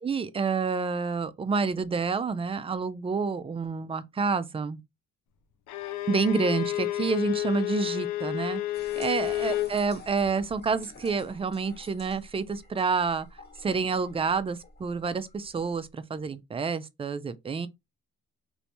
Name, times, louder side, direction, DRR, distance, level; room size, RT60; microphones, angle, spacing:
voice 1, 0.0-4.8 6.1-8.6 9.0-13.3 13.6-17.7, right 5 dB, 20° right, 0.3 m, -28 dB
Bowed string instrument, 5.7-9.8, left 15 dB, 75° left, 0.5 m, -30 dB
sound 1, 8.7-15.9, left 2 dB, 35° left, 1.2 m, -50 dB
3.2 x 2.6 x 2.7 m
cardioid pair, 90°, 30 cm